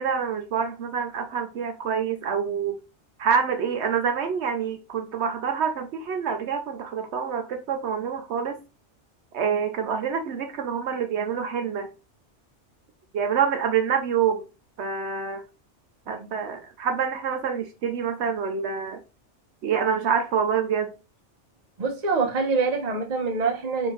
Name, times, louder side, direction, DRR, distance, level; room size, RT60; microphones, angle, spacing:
voice 1, 0.0-2.8 3.2-8.6 9.3-11.9 13.1-14.4 14.8-15.4 16.1-19.0 19.6-20.9, right 7 dB, 70° right, 0.9 m, -26 dB
voice 2, 21.8-23.9, right 4 dB, 40° right, 0.9 m, -25 dB
4.3 x 3.5 x 3.0 m
omnidirectional pair, 1.2 m